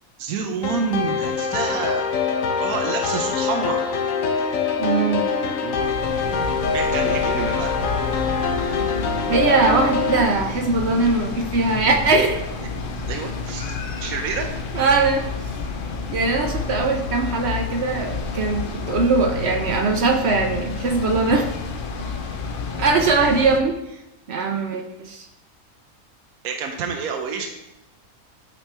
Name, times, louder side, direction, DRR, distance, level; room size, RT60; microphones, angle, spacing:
voice 1, 0.2-2.0 2.6-3.8 5.6-5.9 6.7-7.7 13.1-13.8 14.0-14.5 26.4-27.5, right 5 dB, 85° right, 3 dB, 1.1 m, -28 dB
sound 1, 0.6-10.2, left 5 dB, 70° left, 1.1 m, -24 dB
voice 2, 4.8-5.3 9.3-12.4 14.7-15.3 16.1-21.5 22.8-24.0 24.3-25.3, right 3 dB, 60° right, 4 dB, 0.8 m, -21 dB
sound 2, 5.7-23.6, left 4 dB, 55° left, 0.6 m, -30 dB
8.8 x 4.2 x 3.4 m, 0.94 s
omnidirectional pair, 1.5 m